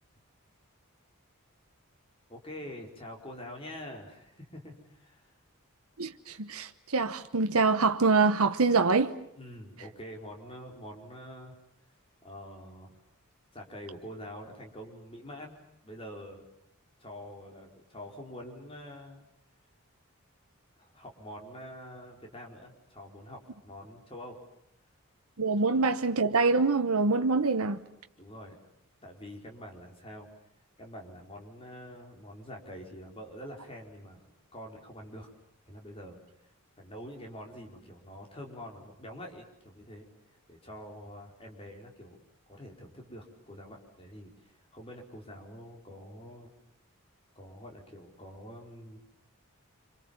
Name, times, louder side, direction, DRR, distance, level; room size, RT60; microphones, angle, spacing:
voice 1, 2.3-5.3 9.4-11.5 12.2-13.0 13.5-16.4 17.0-19.2 20.8-24.4 28.2-28.6 29.0-30.3 30.8-35.3 35.6-36.2 36.8-40.1 40.5-42.2 42.5-46.5 47.3-49.0, equal, 25° left, 4.7 m, -46 dB
voice 2, 6.0-9.2 25.4-27.8, right 4 dB, 80° right, 1.1 m, -25 dB
27.0 x 26.5 x 7.3 m
head